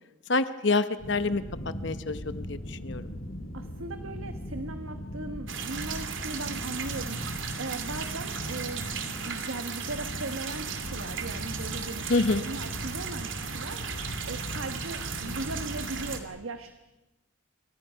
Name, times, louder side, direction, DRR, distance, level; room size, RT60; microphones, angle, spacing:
voice 1, 0.3-1.4 1.8-3.1 12.1-12.4, left 3 dB, 60° left, 12 dB, 0.9 m, -27 dB
sound 1, 1.0-16.2, equal, 85° left, 2.5 m, -39 dB
voice 2, 3.5-9.0 9.2-16.7, right 2 dB, 90° right, 8 dB, 1.3 m, -38 dB
sound 2, 5.5-16.2, right 7 dB, 75° right, 2.7 m, -37 dB
28.5 x 24.0 x 5.7 m, 0.99 s
head